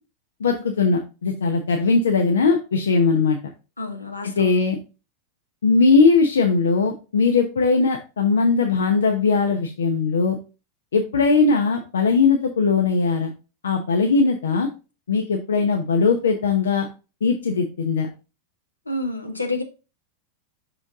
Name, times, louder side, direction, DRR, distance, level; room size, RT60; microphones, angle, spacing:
voice 1, 0.4-3.4 4.4-4.8 5.6-10.4 10.9-13.3 13.6-14.7 15.1-16.9 17.2-18.1, left 4 dB, 65° left, 0.8 m, -19 dB
voice 2, 3.8-4.6 18.9-19.6, left 2 dB, 85° left, 1.2 m, -29 dB
5.9 x 5.0 x 3.6 m
figure-of-eight pair, 90°, 0 cm